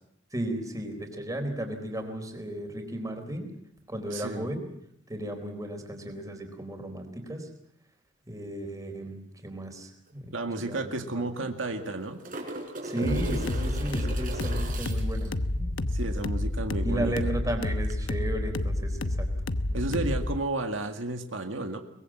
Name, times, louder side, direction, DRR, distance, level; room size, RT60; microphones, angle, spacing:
voice 1, 0.3-3.5 3.9-4.6 5.1-7.5 8.3-11.5 12.8-15.9 16.8-19.3 19.7-20.1, right 1 dB, 20° right, 5 dB, 4.0 m, -35 dB
voice 2, 4.1-4.5 10.3-12.2 15.9-17.1 19.7-21.8, right 2 dB, 85° right, 5 dB, 2.0 m, -32 dB
sound 1, 10.1-10.2 10.4-10.5 11.6-15.3 17.8-17.9, right 2 dB, 45° right, 4.5 m, -39 dB
sound 2, 13.0-20.4, left 1 dB, 75° left, 1.0 m, -29 dB
23.5 x 20.5 x 7.5 m, 0.77 s
head